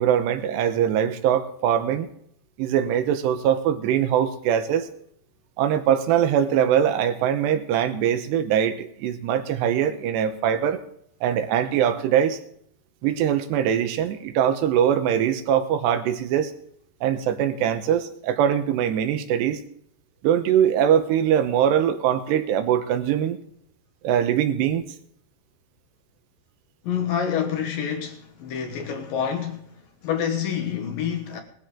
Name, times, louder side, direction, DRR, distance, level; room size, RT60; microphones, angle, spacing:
voice 1, 0.0-2.1 2.6-4.9 5.6-10.8 11.2-12.4 13.0-16.5 17.0-19.6 20.2-23.4 24.0-24.8, right 9 dB, 85° right, 3.1 m, -22 dB
voice 2, 26.8-29.6 30.0-31.4, left 8 dB, 65° left, 2.7 m, -27 dB
19.0 x 13.0 x 3.8 m
omnidirectional pair, 4.9 m